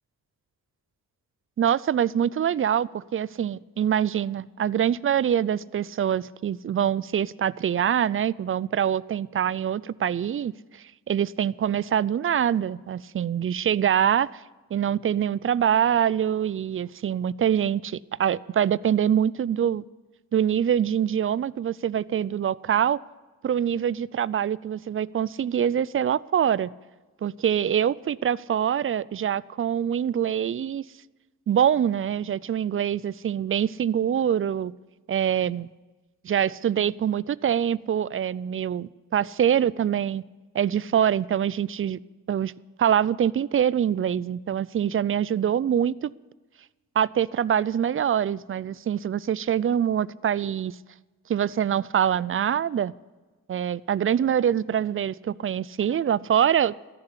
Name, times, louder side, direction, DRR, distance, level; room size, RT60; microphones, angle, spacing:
voice 1, 1.6-14.3 14.7-19.8 20.3-23.0 23.4-26.7 27.2-30.8 31.5-34.7 35.1-35.7 36.2-40.2 40.5-42.0 42.3-42.5 42.8-46.1 47.0-50.8 51.3-52.9 53.5-56.8, right 9 dB, 35° right, 22 dB, 0.4 m, -24 dB
13.5 x 6.8 x 9.9 m, 1.2 s
cardioid pair, 55°, 37 cm